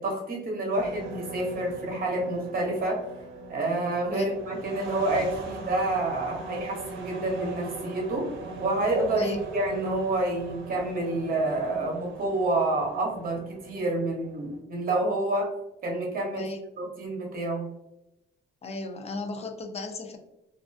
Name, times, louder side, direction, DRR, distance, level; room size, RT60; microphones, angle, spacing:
voice 1, 0.0-3.0 3.5-8.3 8.6-15.5 15.8-16.5 16.8-17.7, right 2 dB, 45° right, 0 dB, 0.9 m, -28 dB
sound 1, 0.7-14.6, right 2 dB, 75° right, 0.6 m, -40 dB
voice 2, 18.6-20.2, left 3 dB, 30° left, 5 dB, 0.4 m, -35 dB
2.3 x 2.1 x 2.5 m, 0.89 s
cardioid pair, 90°, 20 cm